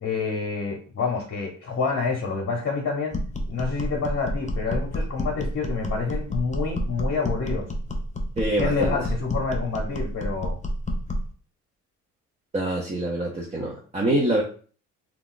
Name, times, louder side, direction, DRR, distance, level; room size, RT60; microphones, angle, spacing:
voice 1, 0.0-3.1 3.5-7.7 8.6-10.6, left 4 dB, 50° left, -1 dB, 0.8 m, -28 dB
sound 1, 3.1-11.3, equal, 25° left, 0.5 m, -29 dB
voice 2, 8.4-9.0 12.5-14.4, right 1 dB, 20° right, -2 dB, 0.6 m, -25 dB
2.4 x 2.3 x 3.8 m, 0.41 s
cardioid pair, 90°, 30 cm